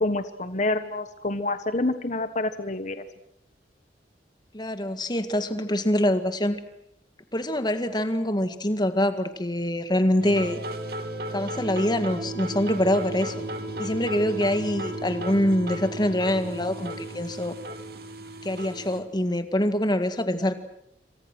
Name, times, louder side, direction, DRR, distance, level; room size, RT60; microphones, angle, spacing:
voice 1, 0.0-3.0, left 2 dB, 45° left, 10 dB, 1.3 m, -27 dB
voice 2, 4.5-6.6 7.3-10.6 11.3-13.3 13.8-17.6 18.4-20.6, left 1 dB, 25° left, 9 dB, 1.9 m, -25 dB
sound 1, 10.2-19.0, right 1 dB, 60° right, 2.8 m, -34 dB
28.0 x 26.0 x 6.3 m, 0.76 s
head